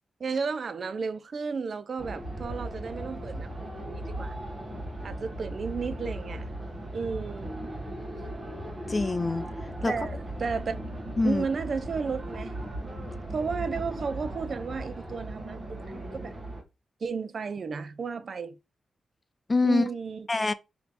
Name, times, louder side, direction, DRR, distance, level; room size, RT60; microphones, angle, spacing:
voice 1, 0.2-4.4 5.0-6.5 6.9-7.5 9.9-10.9 11.2-12.6 13.3-16.4 17.0-18.6 19.6-20.3, right 5 dB, 60° right, 0.5 m, -33 dB
sound 1, 2.0-16.6, right 1 dB, 35° right, 1.3 m, -37 dB
voice 2, 8.9-9.5 9.8-9.9 11.2-11.5 19.5-19.9 20.3-20.5, left 3 dB, 35° left, 0.5 m, -24 dB
3.2 x 2.9 x 4.1 m
supercardioid pair, 50°, 0 cm